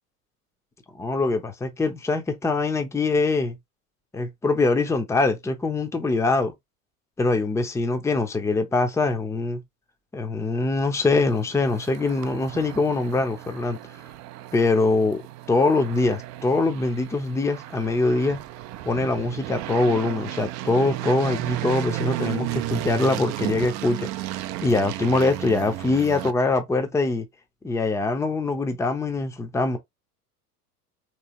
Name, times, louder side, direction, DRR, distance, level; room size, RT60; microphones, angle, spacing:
voice 1, 0.9-3.6 4.1-6.5 7.2-9.6 10.1-13.8 14.5-15.2 15.5-18.4 18.8-24.1 24.6-27.3 27.6-29.8, left 3 dB, 5° left, 0.6 m, -23 dB
sound 1, 11.0-26.3, right 15 dB, 35° right, 0.5 m, -34 dB
3.2 x 3.2 x 2.8 m
hypercardioid pair, 85°, 47 cm